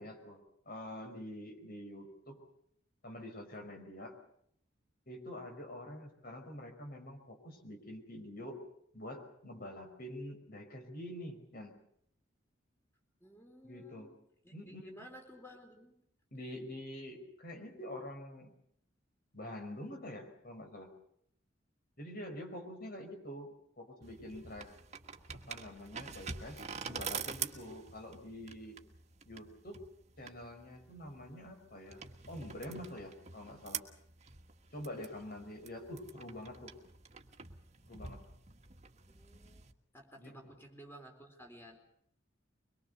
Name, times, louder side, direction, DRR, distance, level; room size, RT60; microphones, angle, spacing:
voice 1, 0.0-2.4 3.0-4.2 5.1-8.6 8.9-11.7 13.6-14.1 14.5-15.1 16.3-18.5 19.3-20.9 22.0-24.7 25.3-28.8 29.2-29.8 30.2-33.8 34.7-36.7 37.9-38.2 40.2-40.5, left 1 dB, 50° left, 5 dB, 5.2 m, -46 dB
voice 2, 13.2-14.1 14.4-16.0 39.1-39.7 39.9-41.8, equal, 10° left, 3 dB, 4.3 m, -54 dB
sound 1, 24.0-39.7, right 6 dB, 35° right, 1.5 m, -46 dB
24.0 x 22.0 x 6.9 m, 0.70 s
head